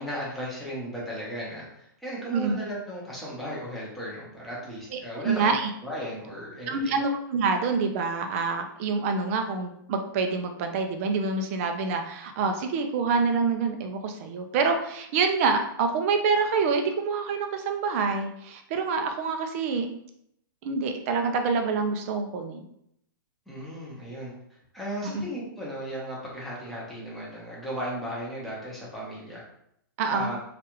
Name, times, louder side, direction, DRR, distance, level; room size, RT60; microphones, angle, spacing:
voice 1, 0.0-5.5 5.8-7.0 23.5-29.4 30.1-30.4, equal, ahead, -7 dB, 0.9 m, -36 dB
voice 2, 4.9-5.7 6.7-19.9 20.6-22.6 25.0-25.2 30.0-30.3, right 4 dB, 40° right, 6 dB, 0.4 m, -26 dB
3.2 x 2.4 x 3.0 m, 0.74 s
hypercardioid pair, 150°, 12 cm